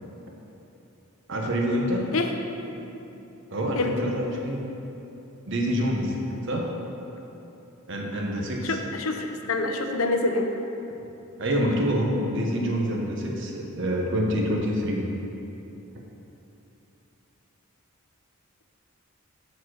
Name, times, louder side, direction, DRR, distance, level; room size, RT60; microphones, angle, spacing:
voice 1, 1.3-2.1 3.5-4.6 5.5-6.2 6.4-6.7 7.9-8.8 11.4-15.1, equal, 60° right, 0 dB, 1.0 m, -26 dB
voice 2, 8.6-10.5, left 3 dB, 75° left, 4 dB, 0.6 m, -26 dB
7.1 x 4.2 x 6.3 m, 3.0 s
head